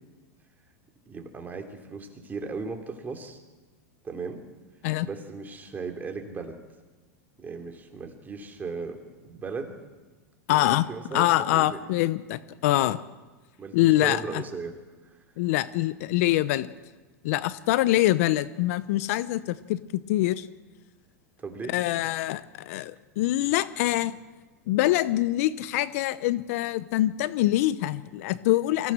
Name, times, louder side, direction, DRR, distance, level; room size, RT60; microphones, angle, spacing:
voice 1, 1.1-3.4 4.0-4.4 5.0-6.6 7.4-9.8 10.5-11.8 12.8-12.9 13.6-14.8 15.0-15.2 21.4-21.7, right 4 dB, 20° right, 4 dB, 3.2 m, -37 dB
voice 2, 10.5-10.9 11.1-13.0 13.7-14.4 15.4-16.7 17.2-20.5 21.7-24.2 24.7-28.9, left 15 dB, 65° left, 16 dB, 0.8 m, -24 dB
23.5 x 15.5 x 7.6 m, 1.3 s
hypercardioid pair, 110°, 9 cm